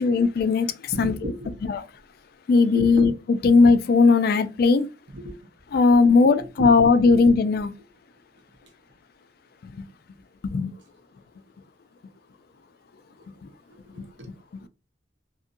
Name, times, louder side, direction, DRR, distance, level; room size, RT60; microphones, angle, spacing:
voice 1, 0.0-1.1 1.7-1.8 2.5-3.1 3.4-4.9 5.7-7.7 10.4-10.7, left 4 dB, 60° left, 0.3 m, -18 dB
voice 2, 0.9-1.7 2.7-3.1 4.7-4.8 5.1-5.4 5.7-7.3 8.3-8.7 13.2-14.7, right 1 dB, 80° right, 0.8 m, -36 dB
2.7 x 2.5 x 2.5 m
head